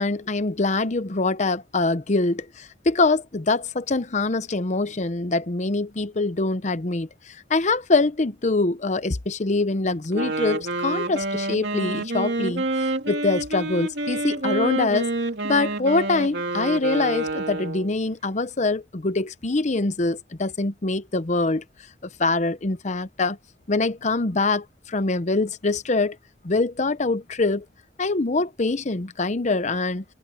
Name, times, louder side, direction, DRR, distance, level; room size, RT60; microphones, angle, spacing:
voice 1, 0.0-15.1 15.4-21.6 22.2-23.4 23.7-26.2 26.4-27.7 28.0-30.0, left 3 dB, 40° left, 0.8 m, -24 dB
Wind instrument woodwind instrument, 10.0-17.9, right 2 dB, 70° right, 3.5 m, -28 dB
head